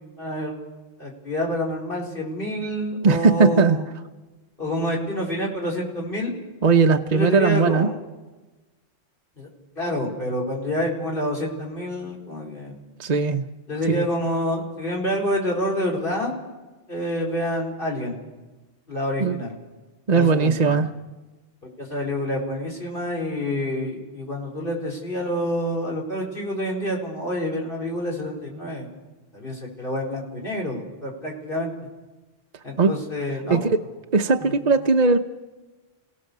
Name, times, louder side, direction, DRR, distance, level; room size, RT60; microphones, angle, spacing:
voice 1, 0.2-0.6 1.0-3.9 4.6-6.4 7.1-8.0 9.4-9.5 9.8-12.7 13.7-16.3 16.9-18.2 18.9-19.5 20.1-20.9 21.8-28.9 29.3-31.7 32.6-33.7 34.4-34.5, equal, 45° left, -2 dB, 4.5 m, -27 dB
voice 2, 3.0-3.8 6.6-7.9 13.0-13.4 13.9-14.1 19.2-19.4 20.1-20.9 32.8-32.9 33.5-33.8 34.1-35.2, right 4 dB, 40° right, 5 dB, 0.8 m, -18 dB
29.0 x 17.0 x 6.7 m, 1.2 s
omnidirectional pair, 1.3 m